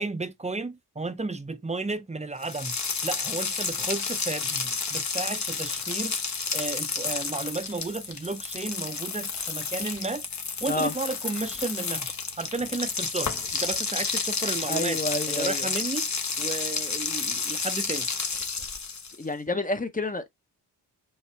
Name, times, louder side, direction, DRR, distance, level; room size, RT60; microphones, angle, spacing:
voice 1, 0.0-2.8 3.0-6.2 6.5-10.3 10.6-15.0 15.3-16.1 16.4-18.1, right 3 dB, 15° right, 0.7 m, -33 dB
sound 1, 2.4-19.2, left 5 dB, 45° left, 1.1 m, -31 dB
voice 2, 14.7-15.7 19.2-20.3, left 2 dB, 20° left, 0.9 m, -29 dB
5.6 x 2.1 x 4.6 m
cardioid pair, 60°, 40 cm